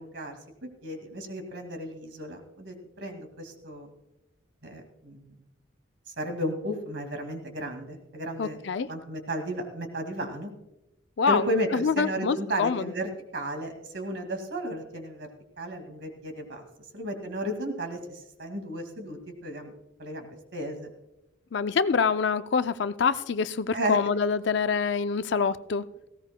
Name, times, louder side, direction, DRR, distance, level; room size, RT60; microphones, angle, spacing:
voice 1, 0.0-3.9 4.6-5.3 6.2-8.6 8.9-10.5 11.3-15.3 15.6-16.6 16.9-19.7 20.0-20.9 23.7-24.0, equal, 60° right, 5 dB, 2.1 m, -34 dB
voice 2, 8.4-8.9 11.2-12.9 21.5-25.9, left 5 dB, 60° left, 12 dB, 0.4 m, -26 dB
18.5 x 16.0 x 2.2 m, 0.95 s
head